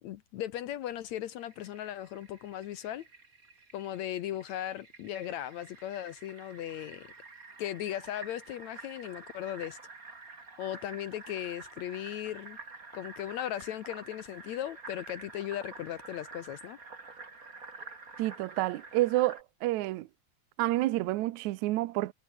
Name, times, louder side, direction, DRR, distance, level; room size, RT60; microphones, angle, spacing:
voice 1, 0.0-3.1 3.7-7.1 7.6-9.8 10.6-12.6 12.9-16.8, left 12 dB, 70° left, 1.7 m, -37 dB
Fill (with liquid), 1.4-19.4, right 4 dB, 25° right, 3.0 m, -49 dB
voice 2, 18.2-20.1 20.6-22.1, right 17 dB, 75° right, 1.8 m, -29 dB
omnidirectional pair, 4.2 m